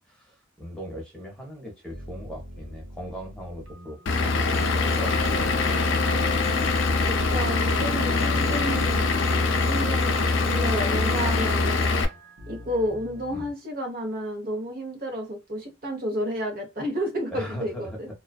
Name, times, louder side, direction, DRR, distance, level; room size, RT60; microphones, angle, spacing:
voice 1, 0.0-5.4 13.3-13.5 17.3-18.0, equal, 5° left, 0.8 m, -39 dB
sound 1, 1.9-13.5, equal, 75° right, 0.7 m, -44 dB
Vehicle / Engine, 4.1-12.1, left 3 dB, 70° left, 0.4 m, -23 dB
voice 2, 7.1-9.1 9.7-11.8 12.5-18.1, equal, 45° right, 0.9 m, -31 dB
2.4 x 2.3 x 2.3 m
head